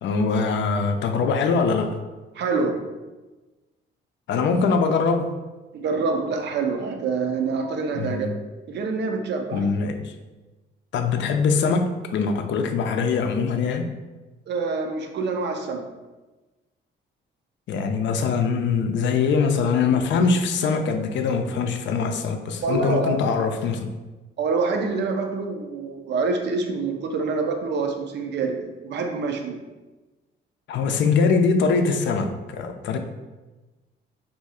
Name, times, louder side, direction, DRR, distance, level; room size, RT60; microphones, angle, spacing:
voice 1, 0.0-2.0 4.3-5.3 7.9-8.4 9.5-10.1 10.9-13.9 17.7-23.9 30.7-33.0, left 5 dB, 65° left, 6 dB, 0.4 m, -22 dB
voice 2, 2.4-2.8 5.7-8.3 8.7-9.6 14.5-15.9 22.6-23.3 24.4-29.6, right 4 dB, 60° right, 4 dB, 0.5 m, -26 dB
2.7 x 2.3 x 4.1 m, 1.2 s
cardioid pair, 90°, 20 cm